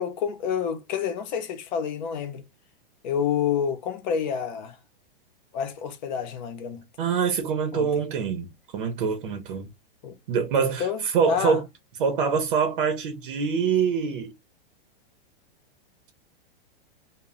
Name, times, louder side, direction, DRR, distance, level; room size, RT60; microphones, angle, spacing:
voice 1, 0.0-2.4 3.0-4.8 5.5-6.8 7.7-8.0 10.0-10.2 10.6-11.6, left 7 dB, 50° left, 0.6 m, -28 dB
voice 2, 7.0-9.7 10.3-11.6 12.0-14.3, right 6 dB, 65° right, 0.6 m, -25 dB
2.1 x 2.1 x 3.5 m
supercardioid pair, 160°, 29 cm